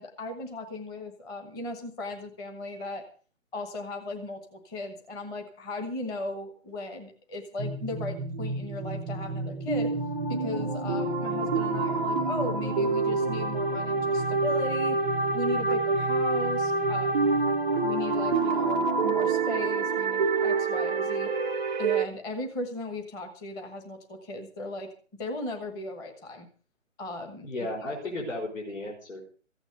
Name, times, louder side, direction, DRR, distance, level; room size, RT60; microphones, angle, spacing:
voice 1, 0.0-3.0 3.5-9.9 10.3-15.0 15.3-17.3 17.8-21.3 21.8-24.9 25.2-26.5 27.0-27.5, left 2 dB, 10° left, 4 dB, 1.2 m, -37 dB
sound 1, 7.6-22.0, right 3 dB, 5° right, 0.6 m, -27 dB
voice 2, 27.4-29.2, left 1 dB, 75° left, 0 dB, 5.7 m, -34 dB
15.0 x 9.1 x 6.7 m, 0.41 s
figure-of-eight pair, 150°, 39 cm